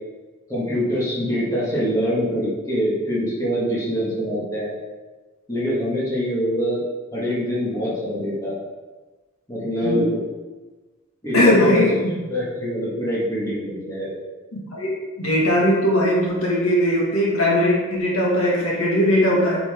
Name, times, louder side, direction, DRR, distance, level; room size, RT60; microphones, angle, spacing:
voice 1, 0.5-4.8 5.5-6.8 7.1-8.6 9.5-10.2 11.2-14.2, equal, 15° left, -7 dB, 2.1 m, -24 dB
voice 2, 11.3-12.1 14.7-19.6, left 1 dB, 70° left, -4 dB, 2.1 m, -19 dB
8.4 x 6.0 x 3.8 m, 1.2 s
head